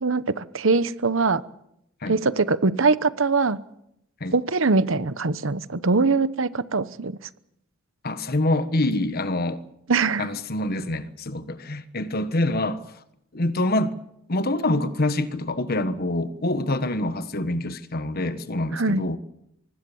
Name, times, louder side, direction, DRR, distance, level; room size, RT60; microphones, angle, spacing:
voice 1, 0.0-1.4 2.1-3.6 4.3-7.2 9.9-10.3 18.7-19.0, right 3 dB, 65° right, 1.0 m, -22 dB
voice 2, 8.0-9.6 10.2-12.8 13.3-13.9 14.3-19.2, left 1 dB, 45° left, 1.3 m, -25 dB
25.0 x 19.5 x 7.2 m
head